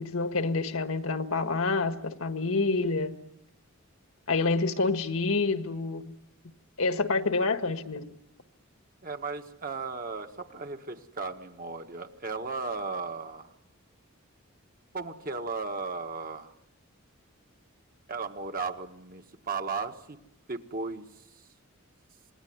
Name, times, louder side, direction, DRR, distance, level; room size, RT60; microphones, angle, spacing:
voice 1, 0.0-3.2 4.3-6.1 6.8-8.1, left 3 dB, 75° left, 1.6 m, -28 dB
voice 2, 9.0-13.6 14.9-16.5 18.1-20.2 20.5-21.5, right 4 dB, 45° right, 1.6 m, -36 dB
27.5 x 20.5 x 9.5 m
head